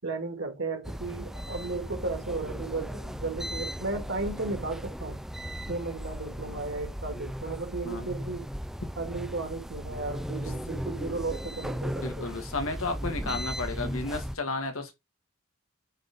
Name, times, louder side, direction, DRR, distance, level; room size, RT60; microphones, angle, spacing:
voice 1, 0.0-5.2 5.7-8.5 9.0-12.3, right 3 dB, 60° right, 2.1 m, -35 dB
sound 1, 0.8-14.4, equal, ahead, 0.3 m, -37 dB
voice 2, 12.0-14.9, left 3 dB, 70° left, 1.6 m, -33 dB
8.7 x 4.1 x 3.5 m
head